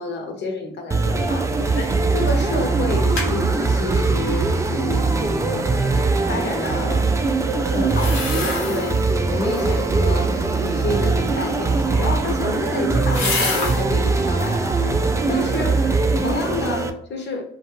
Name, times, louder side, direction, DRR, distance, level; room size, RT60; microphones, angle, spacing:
voice 1, 0.0-5.6 6.3-7.2 7.6-15.0 15.3-17.4, left 2 dB, 60° left, 3 dB, 0.8 m, -29 dB
sound 1, 0.9-16.9, right 3 dB, 15° right, 0.3 m, -21 dB
sound 2, 1.7-2.1 2.4-2.5 2.8-3.3 7.8-9.0 9.4-9.9 11.9-13.9 14.3-14.7 15.2-15.8 16.2-16.3, left 3 dB, 90° left, 0.9 m, -29 dB
2.5 x 2.3 x 2.9 m, 0.69 s
cardioid pair, 90°, 20 cm